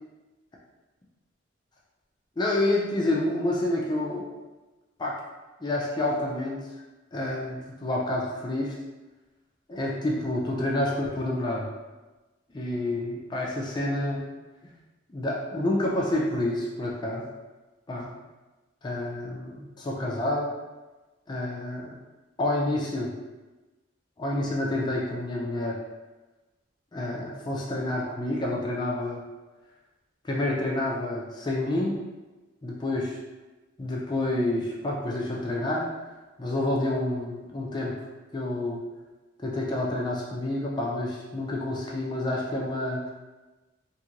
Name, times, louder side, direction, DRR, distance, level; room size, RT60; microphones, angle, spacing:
voice 1, 2.4-4.2 5.0-5.2 5.6-6.7 7.1-8.7 9.7-11.7 12.5-14.3 15.1-17.2 17.9-18.1 18.8-20.5 21.3-22.0 22.4-23.1 24.2-25.8 26.9-29.2 30.2-32.0 32.6-33.1 33.8-35.9 36.4-38.0 38.3-38.8 39.4-43.1, left 1 dB, 20° left, -3 dB, 0.4 m, -28 dB
2.6 x 2.4 x 2.9 m, 1.2 s
head